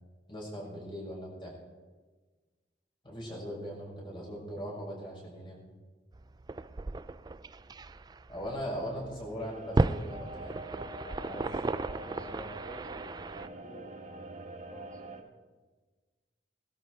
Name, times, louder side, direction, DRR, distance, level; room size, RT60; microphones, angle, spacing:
voice 1, 0.3-1.5 3.0-5.6 8.3-10.7 11.2-11.7, equal, 30° left, -4 dB, 6.0 m, -40 dB
sound 1, 6.1-13.5, right 2 dB, 25° right, 0.4 m, -35 dB
sound 2, 9.4-15.2, right 2 dB, 45° right, 1.3 m, -45 dB
voice 2, 11.7-14.2 14.6-15.3, equal, 5° left, 1 dB, 2.1 m, -51 dB
20.0 x 13.0 x 4.7 m, 1.4 s
head